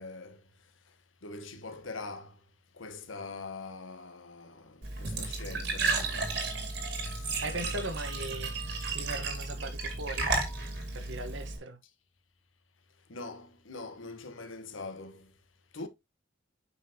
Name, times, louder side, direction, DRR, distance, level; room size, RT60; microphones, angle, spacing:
voice 1, 0.0-2.5 2.7-6.5 6.9-7.9 13.1-15.4 15.7-15.9, left 3 dB, 80° left, 1.2 m, -44 dB
Glass / Trickle dribble / Fill (with liquid), 4.8-11.6, right 3 dB, 55° right, 2.4 m, -33 dB
voice 2, 7.4-10.3 10.9-11.8, right 2 dB, 75° right, 1.3 m, -39 dB
8.3 x 5.6 x 2.9 m
head